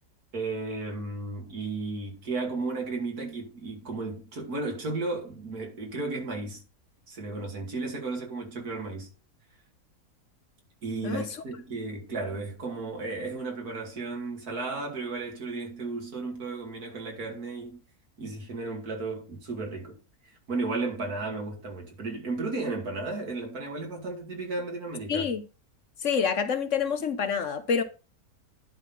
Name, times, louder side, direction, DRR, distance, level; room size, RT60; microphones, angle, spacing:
voice 1, 0.3-6.6 7.1-9.1 10.8-17.8 18.2-20.0 20.5-25.3, right 3 dB, 80° right, 2.8 m, -34 dB
voice 2, 25.1-25.4 26.0-27.8, left 6 dB, 55° left, 1.2 m, -27 dB
11.0 x 4.0 x 5.6 m
omnidirectional pair, 1.6 m